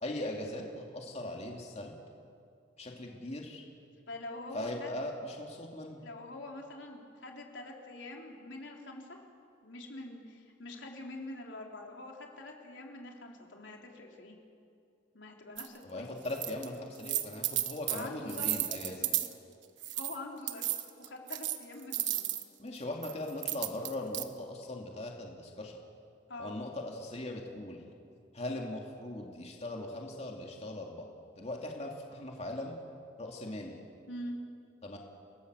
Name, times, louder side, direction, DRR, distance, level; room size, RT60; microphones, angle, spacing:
voice 1, 0.0-1.9 2.8-3.6 4.5-6.0 15.8-19.0 22.6-25.8 26.4-27.8 28.3-31.1 31.4-32.7 33.2-33.7 34.8-35.0, left 1 dB, 35° left, 1 dB, 2.4 m, -39 dB
voice 2, 4.1-5.0 6.0-9.2 9.6-14.4 15.1-16.1 17.9-18.5 19.0-19.3 19.9-20.7 21.0-22.3 26.3-26.6 34.1-34.4, left 2 dB, 85° left, 1 dB, 3.5 m, -45 dB
sound 1, 15.6-15.7 16.2-16.7 16.9-19.3 19.8-20.2 20.5-22.4 23.0-24.2, right 14 dB, 80° right, 1.3 m, -33 dB
29.5 x 18.5 x 7.9 m, 2.4 s
head